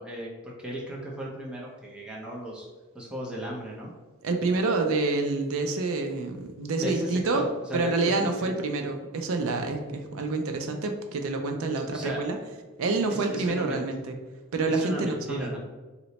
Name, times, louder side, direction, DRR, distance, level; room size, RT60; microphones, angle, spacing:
voice 1, 0.0-2.7 2.9-3.9 6.8-8.5 11.9-12.2 13.1-13.8 14.7-15.6, right 1 dB, 5° right, -4 dB, 0.5 m, -35 dB
voice 2, 4.2-7.4 7.7-12.4 12.8-14.2 14.5-15.5, right 3 dB, 70° right, 5 dB, 0.4 m, -27 dB
2.9 x 2.1 x 3.9 m, 1.2 s
head